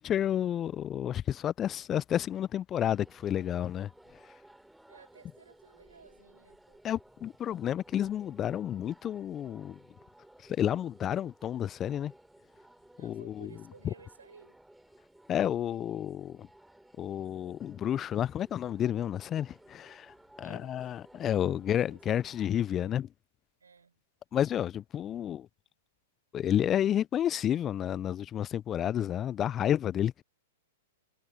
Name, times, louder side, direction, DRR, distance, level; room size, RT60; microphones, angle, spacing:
voice 1, 0.0-4.3 6.8-9.8 10.4-12.1 13.0-13.5 15.3-16.5 17.0-23.1 24.3-25.5 26.3-30.2, left 10 dB, 25° left, 0.4 m, -31 dB
sound 1, 2.8-22.5, right 1 dB, 5° right, 3.2 m, -58 dB
voice 2, 4.9-6.8 13.0-14.6 20.4-20.9 21.6-22.0 22.8-22.9 23.6-24.0, right 5 dB, 85° right, 6.8 m, -56 dB
hypercardioid pair, 110°, 0 cm